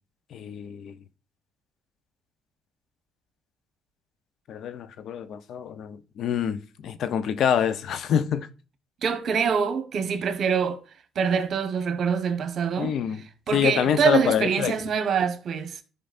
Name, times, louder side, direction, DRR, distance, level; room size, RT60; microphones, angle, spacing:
voice 1, 0.3-0.9 4.5-8.5 12.8-13.2 13.5-14.7, left 8 dB, 70° left, 0.8 m, -26 dB
voice 2, 9.0-10.8 11.1-13.0 13.5-15.8, right 6 dB, 60° right, 1.4 m, -25 dB
14.0 x 5.5 x 2.6 m
cardioid pair, 90°, 0 cm